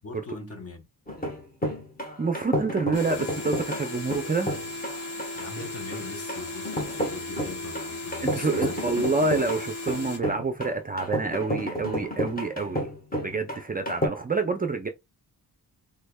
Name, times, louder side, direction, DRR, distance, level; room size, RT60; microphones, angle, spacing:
voice 1, 0.0-0.9 5.3-8.8, left 3 dB, 40° left, 0.9 m, -40 dB
sound 1, 1.1-14.1, equal, 25° left, 1.2 m, -31 dB
voice 2, 2.2-4.5 8.2-12.9 13.2-14.9, right 3 dB, 25° right, 0.4 m, -27 dB
sound 2, 2.9-10.2, left 2 dB, 55° left, 1.3 m, -36 dB
3.5 x 3.2 x 2.2 m
wide cardioid pair, 115°, 38 cm